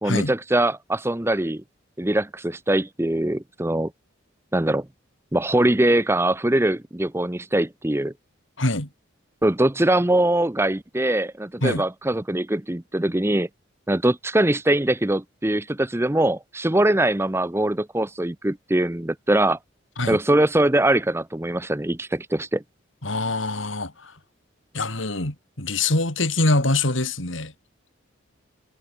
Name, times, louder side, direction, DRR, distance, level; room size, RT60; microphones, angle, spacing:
voice 1, 0.0-1.6 2.0-3.9 4.5-4.9 5.3-8.1 9.4-13.5 13.9-19.6 20.1-22.6, right 1 dB, 10° right, 0.7 m, -22 dB
voice 2, 8.6-8.9 11.6-11.8 20.0-20.2 23.0-24.1 24.7-27.5, left 2 dB, 75° left, 4.0 m, -24 dB
head